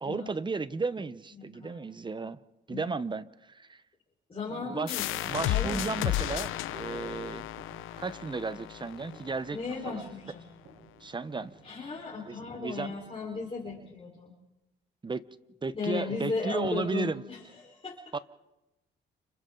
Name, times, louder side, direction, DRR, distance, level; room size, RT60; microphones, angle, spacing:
voice 1, 0.0-2.4 2.7-3.8 4.5-5.0 5.3-7.5 8.0-9.6 9.8-10.1 11.0-11.5 12.3-12.9 15.0-15.3 15.6-17.2 18.1-18.2, right 4 dB, 25° right, 15 dB, 0.8 m, -34 dB
voice 2, 1.4-1.8 2.7-2.8 4.3-5.2 5.4-6.0 9.5-10.5 11.6-14.3 15.7-18.0, left 4 dB, 30° left, -4 dB, 4.4 m, -36 dB
sound 1, 4.9-10.3, left 14 dB, 90° left, 0.7 m, -34 dB
sound 2, 5.2-13.9, right 3 dB, 80° right, 7.7 m, -57 dB
30.0 x 27.5 x 3.9 m, 0.98 s
cardioid pair, 90°, 20 cm